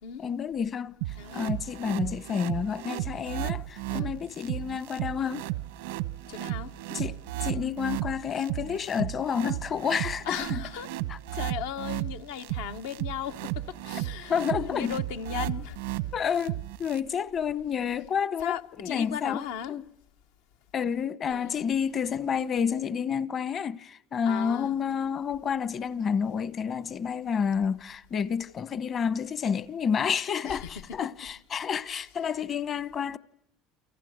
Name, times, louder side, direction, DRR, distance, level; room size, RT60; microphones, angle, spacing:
voice 1, 0.2-0.9 1.3-5.5 6.9-10.7 11.1-11.2 14.3-14.9 16.1-19.8 20.7-33.2, left 7 dB, 40° left, 1.1 m, -30 dB
sound 1, 1.0-17.0, right 16 dB, 90° right, 1.0 m, -34 dB
voice 2, 1.2-1.5 3.9-4.1 6.3-6.7 10.2-10.9 11.3-15.8 18.4-19.8 21.3-21.7 24.3-24.8 30.4-31.0, left 9 dB, 80° left, 1.1 m, -37 dB
30.0 x 24.5 x 8.1 m
supercardioid pair, 95°, 0 cm